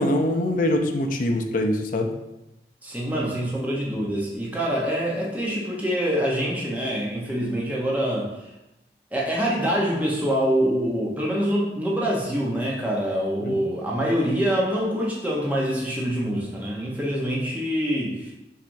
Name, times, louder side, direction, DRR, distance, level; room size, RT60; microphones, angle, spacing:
voice 1, 0.0-2.1 13.4-13.6, left 1 dB, 50° left, 4 dB, 0.4 m, -23 dB
voice 2, 2.8-8.3 9.1-18.3, equal, 10° right, -4 dB, 0.8 m, -25 dB
5.9 x 3.3 x 2.6 m, 0.93 s
head